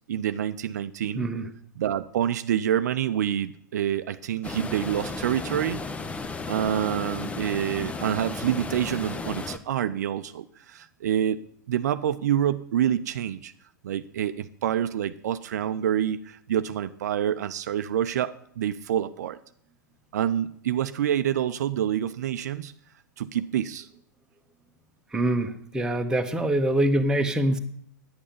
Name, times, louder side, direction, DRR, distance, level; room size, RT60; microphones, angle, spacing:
voice 1, 0.1-1.3 1.8-5.8 6.5-11.4 11.7-13.5 13.8-19.4 20.1-22.7 23.2-23.9, right 10 dB, 60° right, 11 dB, 0.7 m, -27 dB
voice 2, 1.1-1.5 25.1-27.6, right 1 dB, 5° right, 5 dB, 1.4 m, -24 dB
sound 1, 4.4-9.6, left 3 dB, 15° left, 0.9 m, -34 dB
10.5 x 8.6 x 9.8 m, 0.66 s
figure-of-eight pair, 105°, 10 cm